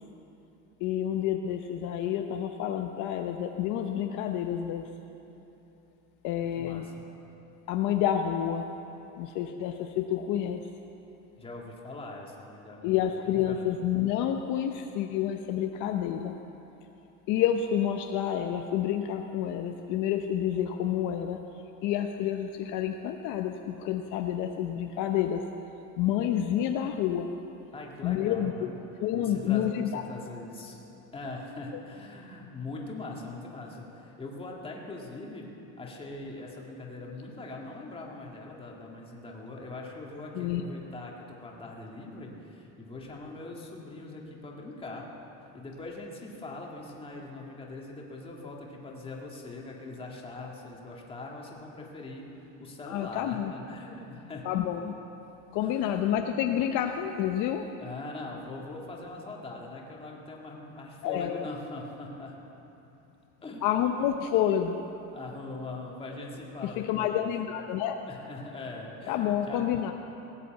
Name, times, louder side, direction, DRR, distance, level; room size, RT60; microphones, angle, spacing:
voice 1, 0.8-4.9 6.2-6.9 7.7-8.7 9.2-10.6 12.8-16.4 17.3-21.4 21.8-25.4 26.0-27.3 28.0-28.7 29.0-30.0 40.3-40.6 52.9-53.5 54.4-55.0 55.5-57.7 61.0-61.5 63.6-64.8 66.8-68.0 69.1-69.9, left 10 dB, 55° left, 5 dB, 0.7 m, -29 dB
voice 2, 6.4-6.9 11.4-13.7 27.7-28.7 29.1-30.8 31.1-45.1 45.5-52.3 52.6-54.5 55.6-56.1 57.8-62.4 63.4-64.1 65.1-67.3 68.1-69.9, left 2 dB, 15° left, -1 dB, 1.9 m, -42 dB
18.0 x 8.3 x 7.8 m, 3.0 s
cardioid pair, 155°, 35 cm